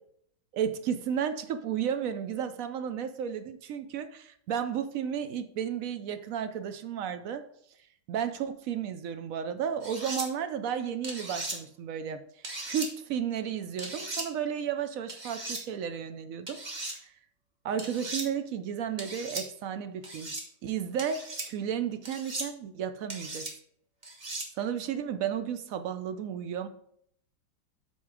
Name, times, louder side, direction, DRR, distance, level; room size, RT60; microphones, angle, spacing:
voice 1, 0.5-7.4 8.1-12.2 12.6-17.1 17.6-20.3 20.6-23.5 24.6-26.7, right 8 dB, 75° right, 9 dB, 0.7 m, -33 dB
sound 1, 9.8-10.3 11.0-11.6 12.4-12.9 13.8-14.3 15.1-15.6 16.5-17.0 17.8-18.3 19.0-19.4 20.0-20.4 21.0-21.5 22.0-22.5 23.1-23.5 24.0-24.5, right 2 dB, 25° right, 1.3 m, -37 dB
8.2 x 4.6 x 4.8 m, 0.69 s
omnidirectional pair, 2.0 m